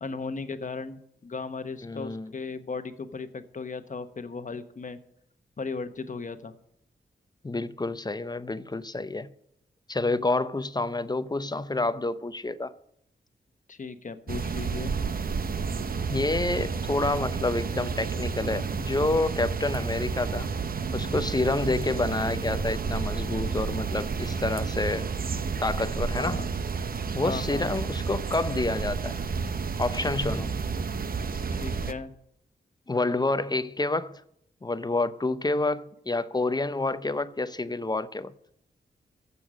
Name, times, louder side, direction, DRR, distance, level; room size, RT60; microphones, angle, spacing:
voice 1, 0.0-5.0 5.6-6.5 13.7-14.9 26.2-26.5 27.2-27.7 30.4-30.5 31.5-32.1, left 4 dB, 45° left, 1.1 m, -36 dB
voice 2, 1.8-2.3 7.4-9.3 9.9-12.7 16.1-20.5 20.9-25.1 25.6-26.4 27.1-29.2 29.8-30.5 32.9-34.2 34.6-38.3, left 2 dB, 20° left, 0.6 m, -28 dB
sound 1, 14.3-31.9, right 5 dB, 55° right, 0.8 m, -31 dB
15.0 x 7.0 x 6.3 m
cardioid pair, 65°, 18 cm